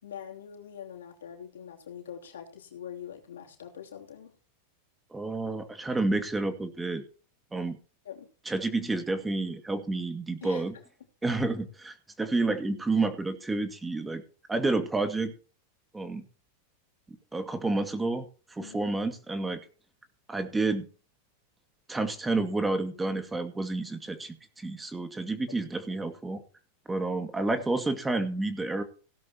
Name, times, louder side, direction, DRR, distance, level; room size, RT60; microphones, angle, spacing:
voice 1, 0.0-4.3 8.0-8.3 10.4-10.6 18.6-18.8, left 9 dB, 85° left, 3 dB, 3.0 m, -43 dB
voice 2, 5.1-7.0 7.5-7.8 8.5-10.7 11.2-14.2 14.5-15.3 15.9-16.2 17.3-18.2 18.5-19.6 20.3-20.9 21.9-26.4 26.9-28.8, right 2 dB, 10° right, 8 dB, 2.1 m, -30 dB
17.0 x 12.0 x 3.0 m, 0.36 s
hypercardioid pair, 105°, 0 cm